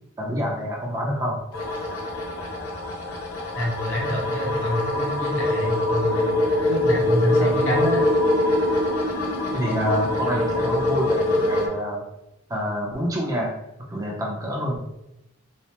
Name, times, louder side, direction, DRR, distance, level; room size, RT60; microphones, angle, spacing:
voice 1, 0.2-1.4 7.4-7.5 9.5-12.0 12.5-13.5 13.9-14.8, equal, 15° right, -2 dB, 0.5 m, -27 dB
sound 1, 1.5-11.7, left 1 dB, 85° left, 0.6 m, -24 dB
voice 2, 3.6-6.3 6.7-8.0, equal, 60° left, -3 dB, 0.9 m, -26 dB
3.1 x 2.0 x 2.8 m, 0.87 s
head